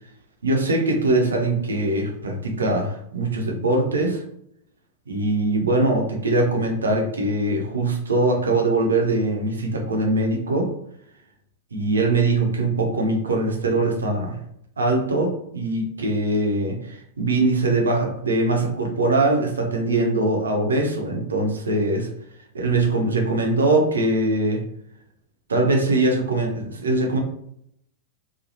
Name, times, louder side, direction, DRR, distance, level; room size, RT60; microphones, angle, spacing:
voice 1, 0.4-4.2 5.1-10.7 11.7-14.4 14.8-22.1 22.5-24.6 25.5-27.2, right 2 dB, 80° right, 2 dB, 0.7 m, -22 dB
3.1 x 2.3 x 2.6 m, 0.71 s
hypercardioid pair, 100°, 0 cm